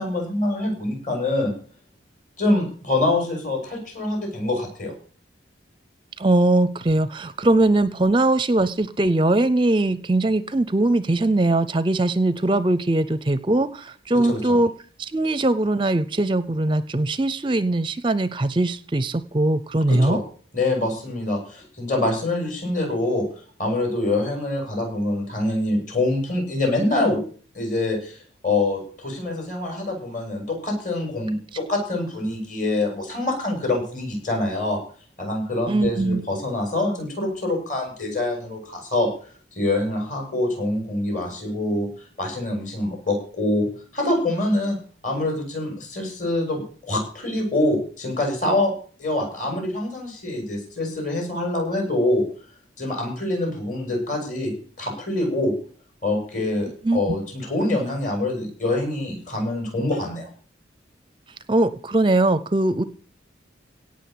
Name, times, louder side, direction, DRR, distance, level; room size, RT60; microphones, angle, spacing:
voice 1, 0.0-1.5 2.4-4.9 14.2-14.6 19.9-20.2 20.5-23.2 23.6-27.2 27.5-28.2 28.4-34.8 35.2-39.1 39.6-41.9 42.2-43.7 43.9-44.8 45.0-48.7 49.0-52.2 52.8-55.5 56.0-60.3, left 2 dB, 40° left, 2 dB, 8.0 m, -25 dB
voice 2, 6.2-14.7 15.0-20.2 35.7-36.2 56.8-57.2 61.5-62.8, right 2 dB, 25° right, 16 dB, 0.6 m, -21 dB
17.5 x 6.4 x 8.5 m, 0.42 s
head